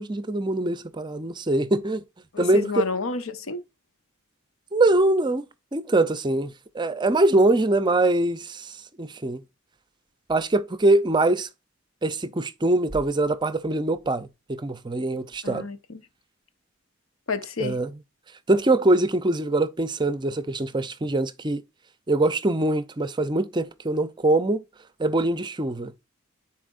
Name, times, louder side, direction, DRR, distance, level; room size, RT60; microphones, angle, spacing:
voice 1, 0.0-2.0 2.4-2.9 4.7-5.5 5.7-9.4 10.3-11.5 12.0-15.7 17.6-17.9 18.5-21.6 22.1-24.6 25.0-25.9, right 2 dB, 20° right, 0.5 m, -23 dB
voice 2, 2.3-3.6 15.4-16.0 17.3-17.8, left 4 dB, 85° left, 0.9 m, -30 dB
9.9 x 4.3 x 2.4 m
head